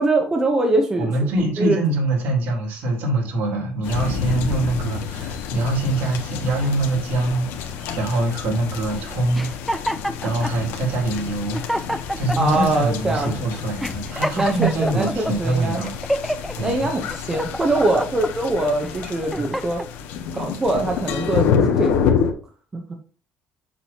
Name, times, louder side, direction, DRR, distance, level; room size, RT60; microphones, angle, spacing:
voice 1, 0.0-1.1 1.6-1.8 12.4-13.3 14.4-15.9 16.6-19.8 20.3-22.0 22.7-22.8, right 2 dB, 15° right, 2 dB, 0.8 m, -22 dB
voice 2, 1.0-9.5 10.2-16.0 16.6-16.9 19.3-19.5, right 2 dB, 65° right, -1 dB, 3.6 m, -24 dB
sound 1, 3.8-22.3, left 7 dB, 85° left, 1.4 m, -28 dB
sound 2, 9.3-10.6 11.2-11.3 11.5-12.6 13.2-13.3 13.8-15.3 15.8-16.5 17.0-18.3 18.9-19.9, equal, ahead, 0.3 m, -27 dB
7.4 x 7.3 x 2.8 m, 0.38 s
cardioid pair, 175°, 4 cm